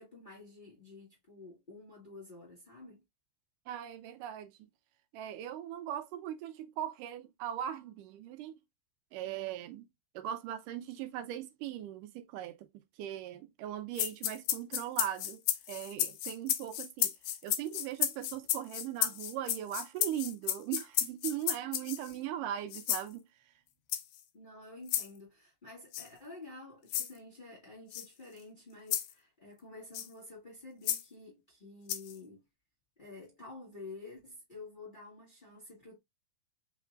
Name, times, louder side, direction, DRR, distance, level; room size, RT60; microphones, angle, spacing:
voice 1, 0.0-3.0 24.3-32.4 33.0-36.0, left 3 dB, 60° left, 0.5 m, -50 dB
voice 2, 3.7-4.5 5.1-8.6 9.1-9.9 10.1-17.1 17.4-23.5, right 11 dB, 75° right, 2.1 m, -39 dB
sound 1, 14.0-22.1 22.7-23.1 23.9-24.2 24.9-25.1 25.9-26.1 26.9-27.1 27.9-28.1 28.9-29.1 29.9-30.1 30.9-31.0 31.9-32.2, left 12 dB, 80° left, 2.3 m, -33 dB
5.3 x 3.5 x 2.4 m
omnidirectional pair, 4.2 m